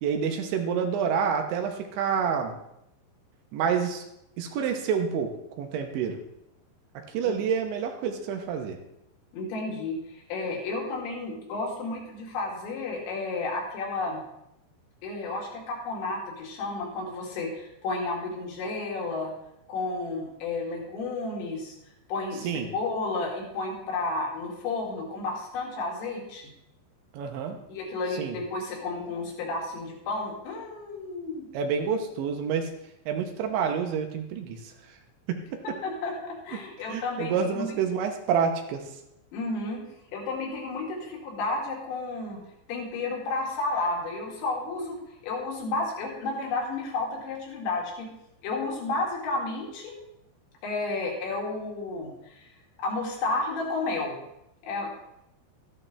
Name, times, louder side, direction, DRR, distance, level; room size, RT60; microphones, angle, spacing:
voice 1, 0.0-2.5 3.5-4.0 4.4-5.3 5.6-6.2 7.1-8.8 22.4-22.7 27.1-27.6 28.2-28.3 31.5-32.7 33.1-34.6 35.3-35.6 36.9-38.8, right 7 dB, 80° right, 4 dB, 3.3 m, -28 dB
voice 2, 9.3-10.0 10.3-14.2 15.0-19.3 19.7-21.8 22.1-26.4 27.7-31.5 35.6-37.8 39.3-39.8 40.1-42.4 42.7-48.1 48.4-49.9 50.6-52.5 52.8-54.2 54.6-54.9, left 3 dB, 75° left, -2 dB, 4.5 m, -32 dB
13.5 x 10.5 x 3.3 m, 0.82 s
omnidirectional pair, 5.4 m